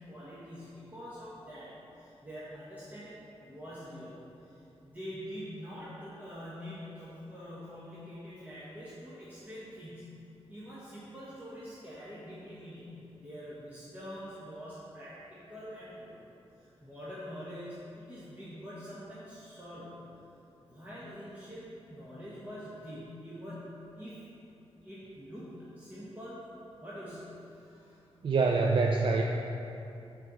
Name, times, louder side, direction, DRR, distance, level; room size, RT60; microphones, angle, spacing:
voice 1, 0.0-4.6 4.8-10.1 10.5-16.2 16.6-20.0 20.6-23.7 24.0-24.2 24.8-26.4 26.8-28.0, equal, 15° right, -10 dB, 1.5 m, -45 dB
voice 2, 28.2-29.2, right 4 dB, 55° right, 1 dB, 0.4 m, -25 dB
6.8 x 4.5 x 6.3 m, 2.8 s
wide cardioid pair, 115°, 10 cm